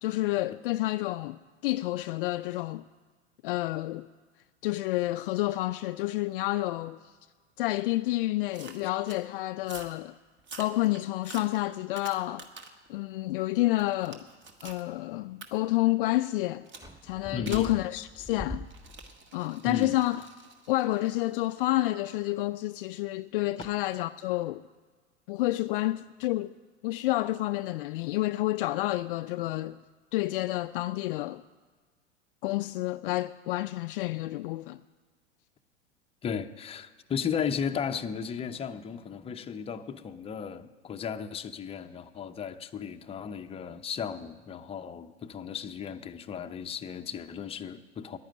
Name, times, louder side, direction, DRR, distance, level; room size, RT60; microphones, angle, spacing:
voice 1, 0.0-2.8 3.4-4.1 4.6-7.0 7.6-10.1 10.6-12.5 12.9-14.3 14.6-16.7 17.0-18.7 19.3-20.2 20.7-24.6 25.3-26.5 26.8-29.8 30.1-31.4 32.4-34.8, left 17 dB, 50° left, 0.4 m, -29 dB
sound 1, 8.5-9.2 9.6-10.0 10.4-12.9 13.3-14.8 15.4-15.5 16.7-16.9 17.5-17.8 18.6-22.6 23.6-23.8, right 4 dB, 35° right, 1.6 m, -48 dB
sound 2, 16.7-19.1, equal, 10° right, 1.8 m, -42 dB
voice 2, 17.3-17.7 19.6-20.0 36.2-48.2, left 7 dB, 15° left, 0.7 m, -35 dB
10.5 x 10.0 x 9.2 m
figure-of-eight pair, 90°, 35 cm